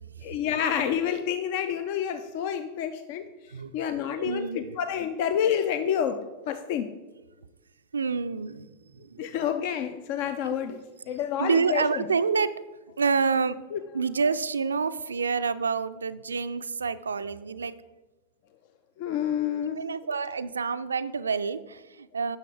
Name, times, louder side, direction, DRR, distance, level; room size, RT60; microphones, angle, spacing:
voice 1, 0.2-3.3 3.7-6.9 9.2-12.0 13.7-13.8 19.0-19.9, left 9 dB, 45° left, 11 dB, 0.4 m, -29 dB
voice 2, 4.2-4.8 7.9-8.7 9.0-9.3 10.5-10.6 11.4-12.6 13.0-13.6 13.9-17.8 19.7-22.4, right 5 dB, 75° right, 14 dB, 0.3 m, -28 dB
9.9 x 6.3 x 4.5 m, 1.2 s
figure-of-eight pair, 90°, 0 cm